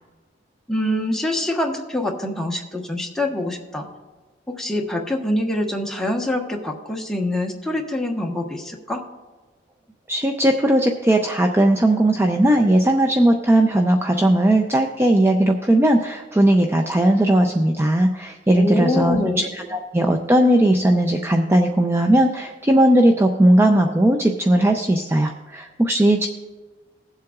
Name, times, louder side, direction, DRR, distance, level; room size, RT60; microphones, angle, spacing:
voice 1, 0.7-3.9 4.5-9.0 18.5-19.4, left 1 dB, 5° left, 0 dB, 1.1 m, -25 dB
voice 2, 10.1-26.3, right 1 dB, 15° right, 3 dB, 0.5 m, -18 dB
20.5 x 7.6 x 2.4 m, 1.3 s
head